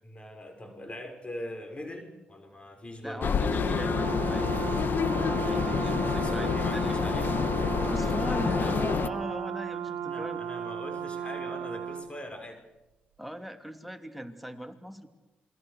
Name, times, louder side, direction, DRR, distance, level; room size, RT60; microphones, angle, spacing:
voice 1, 0.0-3.3 5.4-7.3 9.9-12.6, left 1 dB, 30° left, 6 dB, 6.0 m, -41 dB
voice 2, 3.0-4.7 5.5-7.2 7.8-10.4 13.2-15.1, equal, ahead, 6 dB, 3.0 m, -39 dB
sound 1, 3.2-9.1, left 7 dB, 60° left, 1.4 m, -28 dB
Brass instrument, 3.4-12.1, right 8 dB, 85° right, 1.3 m, -35 dB
28.5 x 22.5 x 6.8 m, 1.0 s
supercardioid pair, 50°, 4 cm